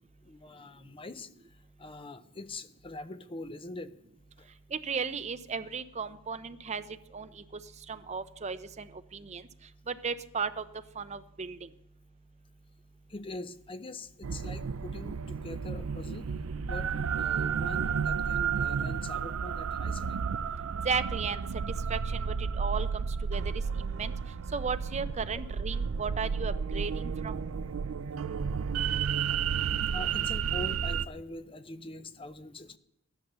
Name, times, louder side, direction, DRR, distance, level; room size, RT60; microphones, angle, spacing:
voice 1, 0.2-3.9 4.4-4.5 13.1-16.3 16.6-20.2 26.9-27.0 27.5-27.8 28.7-28.8 29.9-32.8, left 2 dB, 25° left, 11 dB, 0.6 m, -43 dB
voice 2, 4.7-6.8 7.1-7.3 7.9-9.4 9.9-10.6 11.0-11.6 20.8-21.4 21.9-23.1 23.3-23.4 23.8-24.1 24.5-27.4, right 5 dB, 35° right, 11 dB, 0.6 m, -35 dB
sound 1, 14.2-31.0, right 6 dB, 80° right, 0.5 m, -32 dB
13.5 x 10.5 x 6.8 m, 0.76 s
head